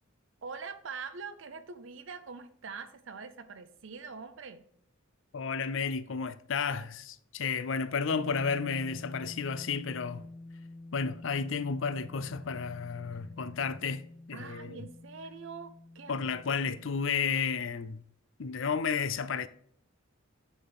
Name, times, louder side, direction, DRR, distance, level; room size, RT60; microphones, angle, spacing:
voice 1, 0.4-4.7 14.3-16.3, right 5 dB, 65° right, 0.7 m, -44 dB
voice 2, 5.3-10.3 10.9-14.0 14.3-14.9 16.1-18.0 18.4-19.5, left 5 dB, 65° left, 0.5 m, -32 dB
sound 1, 8.1-17.1, left 2 dB, 5° right, 2.2 m, -48 dB
9.9 x 4.2 x 3.5 m
head